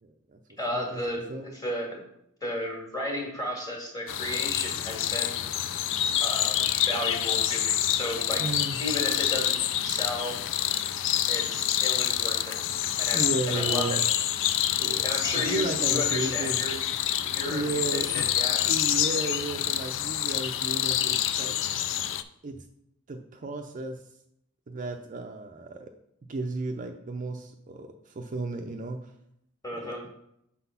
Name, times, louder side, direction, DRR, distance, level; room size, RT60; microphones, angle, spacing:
voice 1, 0.0-0.4 0.7-1.0 1.3-1.5 8.4-8.8 13.1-14.0 14.8-15.1 15.3-16.6 17.2-18.1 18.6-21.6 22.4-22.6 23.1-24.0 24.7-25.9 26.3-29.1 29.8-29.9, right 2 dB, 35° right, 4 dB, 0.5 m, -33 dB
voice 2, 0.6-1.2 1.5-2.0 2.4-5.4 6.2-8.4 8.8-10.4 11.3-12.6 13.0-14.0 15.0-16.8 17.3-18.7 29.6-30.0, left 1 dB, 15° left, 0 dB, 1.8 m, -34 dB
sound 1, 4.1-22.2, left 11 dB, 55° left, 0.4 m, -27 dB
5.9 x 4.0 x 5.6 m, 0.77 s
head